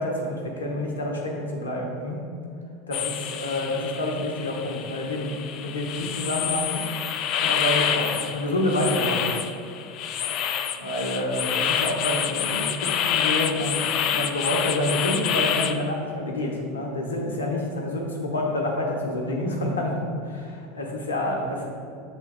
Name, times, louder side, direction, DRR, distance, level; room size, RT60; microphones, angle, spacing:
voice 1, 0.0-2.2 2.9-5.3 5.6-6.8 7.4-9.3 10.8-21.7, left 1 dB, 75° left, 0 dB, 1.0 m, -28 dB
sound 1, 2.9-15.8, left 9 dB, 45° left, 0.4 m, -27 dB
8.0 x 3.6 x 4.8 m, 2.5 s
figure-of-eight pair, 80°, 0 cm